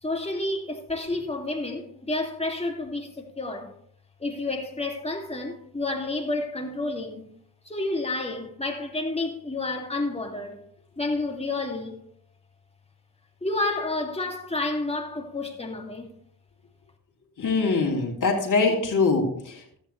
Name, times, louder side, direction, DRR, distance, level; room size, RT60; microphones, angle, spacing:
voice 1, 0.0-3.7 4.2-7.3 7.6-10.6 11.0-12.0 13.4-16.2, left 2 dB, 15° left, 2.5 m, -30 dB
voice 2, 17.4-19.8, left 4 dB, 50° left, 3.0 m, -23 dB
14.0 x 8.5 x 3.2 m
cardioid pair, 65°, 38 cm